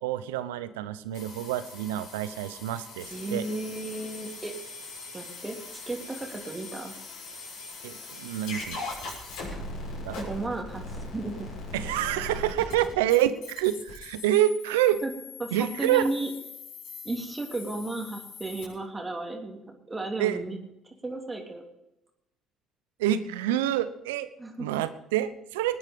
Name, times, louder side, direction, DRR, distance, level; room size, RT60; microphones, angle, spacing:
voice 1, 0.0-3.4 7.8-8.8 10.1-10.2 11.7-15.0 15.5-16.1 20.2-20.4 23.0-24.3 24.6-25.8, right 12 dB, 85° right, 13 dB, 0.8 m, -27 dB
sound 1, 1.1-18.7, left 3 dB, 70° left, 6.5 m, -41 dB
voice 2, 3.1-4.5 5.1-6.9 9.5-9.6 10.2-11.5 15.0-15.1 15.4-16.3 17.0-20.6 21.0-21.6 24.4-24.8, right 2 dB, 20° right, 2 dB, 3.1 m, -34 dB
19.5 x 9.8 x 5.3 m, 0.90 s
hypercardioid pair, 55°, 0 cm